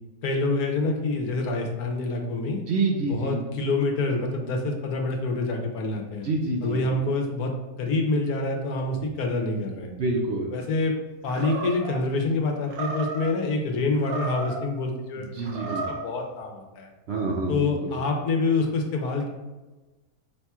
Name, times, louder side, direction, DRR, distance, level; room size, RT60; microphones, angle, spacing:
voice 1, 0.2-2.6 3.0-6.3 6.6-7.5 7.8-9.9 10.5-10.9 11.2-16.9 17.5-19.3, left 3 dB, 90° left, 2 dB, 1.3 m, -27 dB
voice 2, 2.7-3.4 6.2-6.8 10.0-10.5 15.3-15.8 17.1-17.9, right 3 dB, 60° right, 0 dB, 0.7 m, -27 dB
Animal, 11.3-12.0 12.7-13.3 14.0-14.7 15.4-16.1, right 3 dB, 80° right, 1.2 m, -33 dB
5.2 x 2.3 x 4.2 m, 1.2 s
omnidirectional pair, 1.6 m